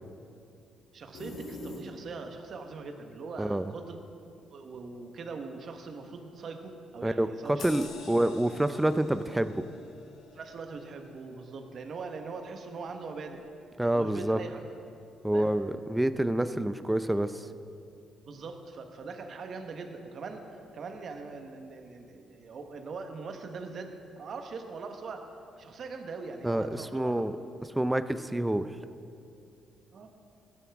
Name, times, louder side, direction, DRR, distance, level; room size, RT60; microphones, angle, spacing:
voice 1, 0.9-4.0 4.5-8.3 10.3-13.4 13.9-14.6 15.3-15.5 18.3-25.3 25.6-27.4 29.9-30.1, right 4 dB, 55° right, 5 dB, 1.2 m, -41 dB
sound 1, 1.1-2.4, left 1 dB, 90° left, 2.5 m, -41 dB
voice 2, 3.4-3.7 7.0-9.6 13.8-14.4 15.2-17.5 26.4-27.3 27.6-28.7, right 1 dB, 10° right, 12 dB, 0.5 m, -28 dB
sound 2, 7.6-12.6 13.0-13.2, left 5 dB, 70° left, 1.2 m, -49 dB
15.0 x 11.0 x 3.6 m, 2.5 s
cardioid pair, 90°, 0 cm